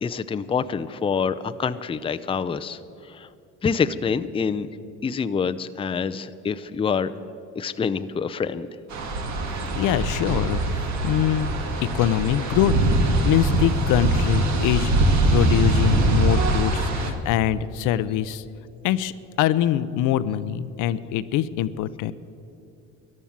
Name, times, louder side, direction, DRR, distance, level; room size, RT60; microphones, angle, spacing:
voice 1, 0.0-3.3 3.6-4.7 5.0-7.1 7.5-8.7, left 6 dB, 15° left, 11 dB, 0.5 m, -26 dB
sound 1, 8.9-17.1, right 2 dB, 60° right, 2.0 m, -22 dB
voice 2, 9.8-11.5 11.9-14.9 15.3-18.4 18.8-19.1 19.4-22.1, left 11 dB, 70° left, 15 dB, 0.6 m, -23 dB
14.0 x 11.0 x 7.2 m, 2.8 s
supercardioid pair, 85°, 33 cm